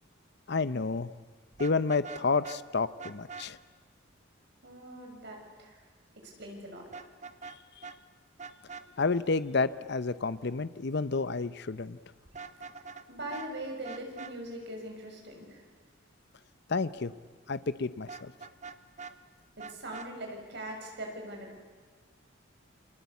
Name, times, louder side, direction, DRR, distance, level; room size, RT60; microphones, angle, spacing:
voice 1, 0.5-1.1 1.6-3.6 9.0-12.0 16.7-17.1 17.5-18.3, left 4 dB, 55° left, 15 dB, 0.7 m, -30 dB
Vehicle horn car horn honking, 1.5-2.6 3.0-3.5 6.9-7.6 7.8-8.0 8.4-8.8 12.2-13.0 13.3-13.5 13.8-14.3 18.1-19.1 19.6-20.1, right 5 dB, 35° right, 1.1 m, -43 dB
voice 2, 4.6-5.8 6.1-6.9 13.1-15.6 19.6-21.6, right 1 dB, 55° right, 1 dB, 6.6 m, -41 dB
28.5 x 24.5 x 8.4 m, 1.5 s
head